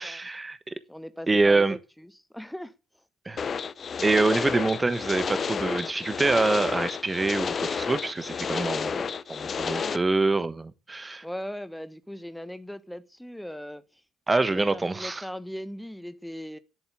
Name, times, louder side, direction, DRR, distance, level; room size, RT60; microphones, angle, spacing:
voice 1, 0.0-0.7 1.3-1.8 3.2-3.5 4.0-9.0 9.3-11.2 14.3-15.2, right 3 dB, 20° right, 1.2 m, -25 dB
voice 2, 0.9-2.7 4.3-4.5 9.7-10.0 11.2-14.0 14.4-16.6, equal, 5° left, 1.2 m, -39 dB
sound 1, 3.4-10.0, left 6 dB, 40° left, 0.8 m, -31 dB
11.0 x 8.6 x 8.2 m
figure-of-eight pair, 45°, 0 cm